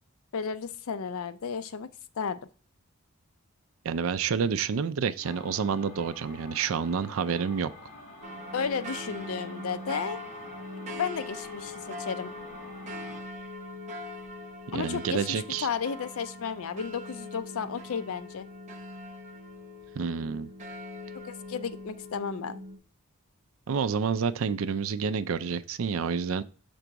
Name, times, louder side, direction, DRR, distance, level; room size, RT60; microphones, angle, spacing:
voice 1, 0.3-1.9 2.2-2.4 8.5-10.2 10.9-12.3 14.7-18.5 21.2-22.6, left 6 dB, 75° left, 0.5 m, -33 dB
voice 2, 3.8-7.7 14.7-15.7 20.0-20.5 23.7-26.4, right 6 dB, 65° right, 0.4 m, -29 dB
sound 1, 5.2-13.2, left 2 dB, 40° left, 2.2 m, -48 dB
sound 2, 8.2-22.8, left 1 dB, 35° right, 0.8 m, -41 dB
6.0 x 3.9 x 4.6 m
head